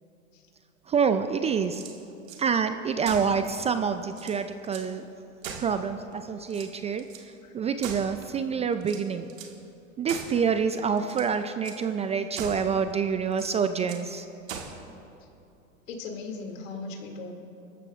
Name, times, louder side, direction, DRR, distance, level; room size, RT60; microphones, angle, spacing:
voice 1, 0.9-1.8 2.4-5.0 5.6-9.3 10.0-14.3, right 6 dB, 15° right, 9 dB, 0.4 m, -27 dB
sound 1, 1.6-2.4 3.0-3.4 3.8-3.9 4.1-4.9 5.4-6.1 6.5-7.3 7.8-8.4 8.8-9.6 10.1-10.5 11.0-11.3 11.6-11.8 12.3-12.7 13.3-14.1 14.5-14.8, right 6 dB, 80° right, 1.8 m, -40 dB
voice 2, 15.9-17.3, left 3 dB, 75° left, 2 dB, 2.5 m, -38 dB
24.5 x 13.5 x 2.5 m, 2.8 s
hypercardioid pair, 95°, 39 cm